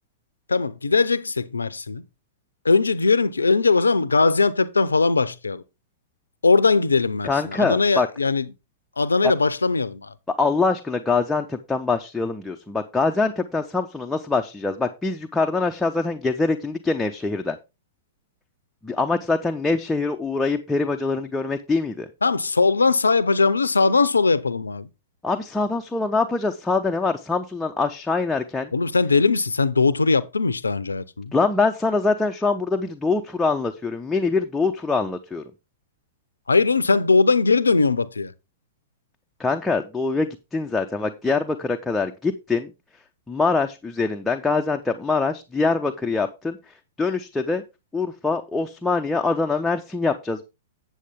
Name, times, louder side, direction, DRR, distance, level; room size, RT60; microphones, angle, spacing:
voice 1, 0.5-2.0 2.6-5.6 6.4-8.5 9.0-10.1 22.2-24.9 28.7-31.3 36.5-38.3, left 4 dB, 75° left, 0.6 m, -20 dB
voice 2, 7.2-8.1 9.2-9.3 10.4-17.6 18.8-22.1 25.2-28.7 31.3-35.4 39.4-42.7 43.3-47.6 47.9-50.4, left 3 dB, 10° left, 0.6 m, -24 dB
8.2 x 7.7 x 3.6 m
figure-of-eight pair, 105°, 0 cm